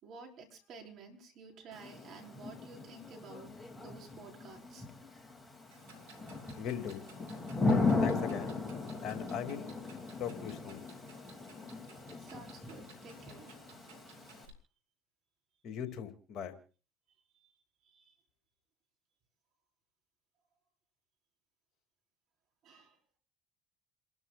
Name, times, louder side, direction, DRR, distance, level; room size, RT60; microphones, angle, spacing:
voice 1, 0.0-4.9 12.2-13.6 17.3-17.5 17.8-18.2 22.6-23.0, right 4 dB, 55° right, 1 dB, 5.1 m, -52 dB
Thunder / Rain, 1.7-14.5, left 3 dB, 15° left, 2.7 m, -37 dB
Clock, 5.7-14.5, right 3 dB, 80° right, 3.0 m, -59 dB
voice 2, 6.6-7.0 8.0-8.6 9.0-9.7 10.2-10.9 15.6-16.6, left 8 dB, 55° left, 5 dB, 2.5 m, -39 dB
30.0 x 12.5 x 2.5 m, 0.37 s
hypercardioid pair, 70°, 0 cm